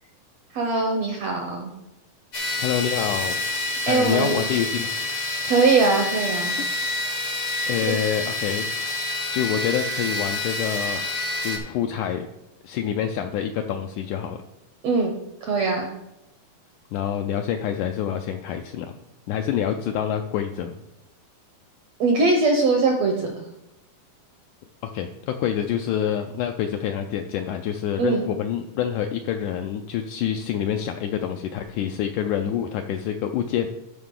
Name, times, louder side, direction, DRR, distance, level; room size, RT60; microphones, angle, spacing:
voice 1, 0.5-1.7 3.9-4.4 5.5-6.5 7.8-7.9 14.8-15.1 15.4-15.9 22.0-23.3 28.0-28.2, right 3 dB, 75° right, 2 dB, 1.5 m, -21 dB
sound 1, 2.3-11.6, left 2 dB, 75° left, 0.9 m, -28 dB
voice 2, 2.6-3.4 3.9-4.9 5.4-5.6 7.3-8.7 9.3-11.0 11.4-12.3 12.6-14.4 16.9-18.9 19.3-20.7 24.8-33.7, left 9 dB, 90° left, 5 dB, 1.8 m, -27 dB
13.0 x 5.5 x 3.8 m, 0.89 s
omnidirectional pair, 4.2 m